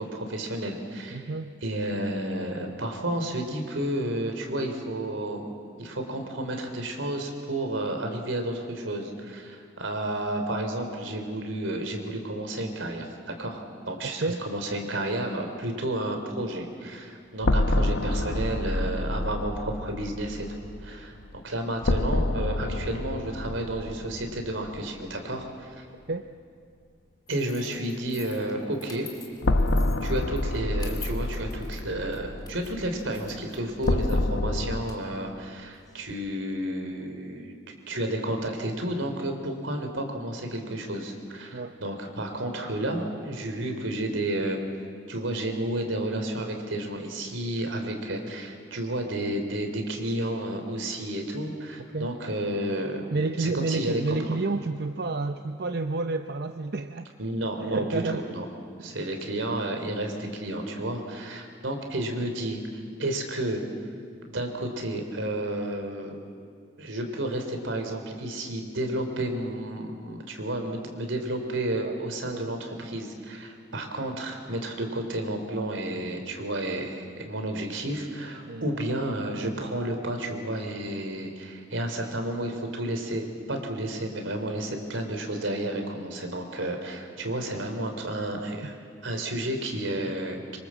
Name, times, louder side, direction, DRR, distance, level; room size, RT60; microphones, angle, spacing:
voice 1, 0.0-1.3 1.6-5.4 5.8-20.5 20.8-25.8 27.3-29.1 30.0-37.5 37.9-44.6 45.1-53.1 53.4-54.0 54.3-54.5 57.2-58.5 58.8-62.6 63.0-63.7 64.3-66.2 66.8-88.8 89.0-90.6, right 1 dB, 85° right, 4 dB, 3.4 m, -31 dB
voice 2, 1.1-1.5 14.2-14.4 26.1-26.3 41.5-41.8 51.9-52.1 53.1-57.1 57.6-58.2 58.8-59.0 71.7-72.0 72.2-72.4 78.5-78.7, right 3 dB, 55° right, 8 dB, 0.6 m, -30 dB
sound 1, 17.4-25.2 25.5-25.6 29.4-34.8, left 1 dB, 80° left, 1.0 m, -28 dB
sound 2, 27.3-36.1, left 6 dB, 20° left, 2.6 m, -49 dB
25.5 x 24.5 x 7.5 m, 2.2 s
head